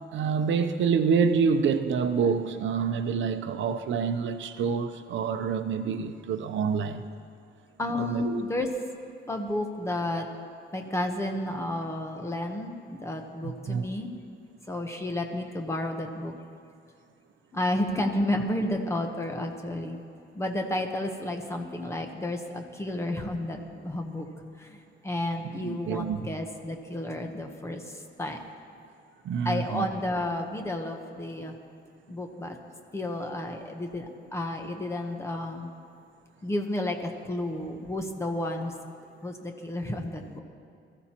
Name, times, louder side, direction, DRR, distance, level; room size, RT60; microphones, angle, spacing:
voice 1, 0.1-7.0 7.9-8.4 13.4-13.8 25.6-26.2 29.2-29.9, right 6 dB, 70° right, 0.7 m, -27 dB
voice 2, 7.8-8.7 9.3-10.3 10.7-14.1 14.7-16.3 17.5-20.0 20.3-24.3 24.6-24.7 25.0-27.8 28.2-28.4 29.4-31.5 32.1-32.6 32.9-35.7 36.4-38.7 39.2-40.4, left 1 dB, 15° left, 0.9 m, -31 dB
21.0 x 14.5 x 2.9 m
wide cardioid pair, 180°, 20 cm